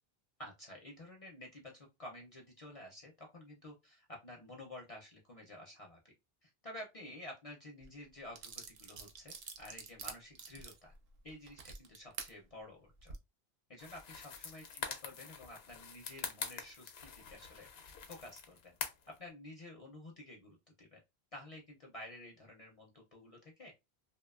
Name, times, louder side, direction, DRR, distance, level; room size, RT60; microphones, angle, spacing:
voice 1, 0.4-6.1 6.4-10.9 11.2-13.1 13.7-17.7 18.0-18.8 19.2-21.0 21.3-23.7, left 1 dB, 45° left, 0 dB, 0.5 m, -51 dB
sound 1, 7.8-7.9 8.3-12.3 12.9-13.2, right 5 dB, 70° right, 0.8 m, -47 dB
sound 2, 13.8-19.2, left 6 dB, 85° left, 0.8 m, -45 dB
2.6 x 2.2 x 2.3 m, 0.23 s
omnidirectional pair, 1.0 m